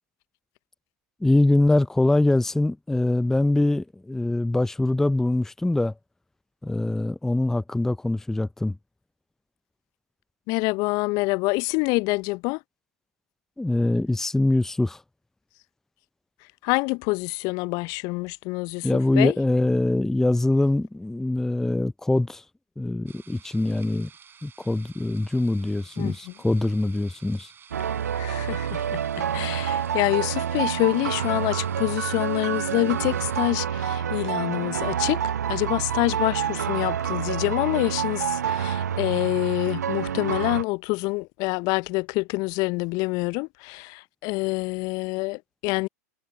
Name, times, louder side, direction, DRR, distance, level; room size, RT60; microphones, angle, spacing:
voice 1, 1.2-5.9 6.6-8.8 13.6-15.0 18.8-22.4 22.8-24.1 24.4-27.5, left 2 dB, 5° left, 0.6 m, -23 dB
voice 2, 10.5-12.6 16.6-19.4 26.0-26.3 28.1-45.9, left 26 dB, 45° left, 0.7 m, -26 dB
sound 1, 23.1-33.5, right 7 dB, 25° right, 5.2 m, -52 dB
sound 2, 27.7-40.6, right 8 dB, 80° right, 0.4 m, -28 dB
figure-of-eight pair, 90°, 9 cm